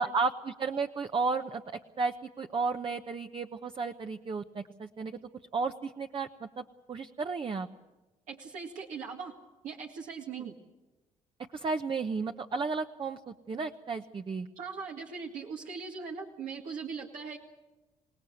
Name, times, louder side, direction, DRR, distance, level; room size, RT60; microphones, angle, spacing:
voice 1, 0.0-1.6 2.0-5.2 5.5-6.6 6.9-7.7 10.4-10.5 11.5-14.5, right 4 dB, 40° right, 6 dB, 1.0 m, -33 dB
voice 2, 8.3-9.3 9.6-10.5 14.6-17.4, right 5 dB, 75° right, 0 dB, 2.1 m, -40 dB
27.0 x 17.5 x 7.9 m, 1.1 s
supercardioid pair, 70°, 14 cm